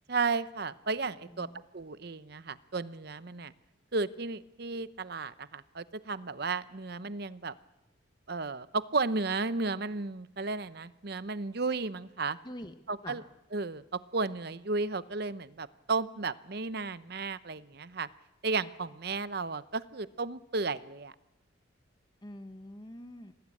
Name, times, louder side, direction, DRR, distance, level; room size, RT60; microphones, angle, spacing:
voice 1, 0.1-1.5 1.7-3.5 3.9-7.5 8.3-12.4 12.9-13.2 13.5-13.8 14.1-18.1 18.4-21.1, right 3 dB, 50° right, 15 dB, 0.8 m, -33 dB
voice 2, 1.3-1.6 12.4-12.7 13.0-13.2 22.2-23.3, left 1 dB, 20° left, 8 dB, 1.0 m, -45 dB
25.0 x 18.5 x 8.6 m, 0.97 s
head